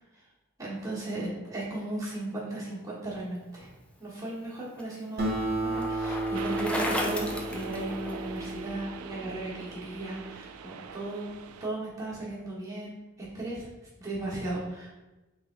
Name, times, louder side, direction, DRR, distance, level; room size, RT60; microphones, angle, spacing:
voice 1, 0.6-3.7 4.0-13.7 14.0-14.9, right 2 dB, 15° right, -7 dB, 1.3 m, -36 dB
Bicycle, 4.1-8.5, left 1 dB, 5° left, 0.3 m, -35 dB
Acoustic guitar, 5.2-10.0, right 1 dB, 50° right, 1.0 m, -33 dB
sound 1, 6.3-11.7, right 6 dB, 80° right, 0.3 m, -43 dB
3.5 x 3.3 x 3.7 m, 1.1 s
head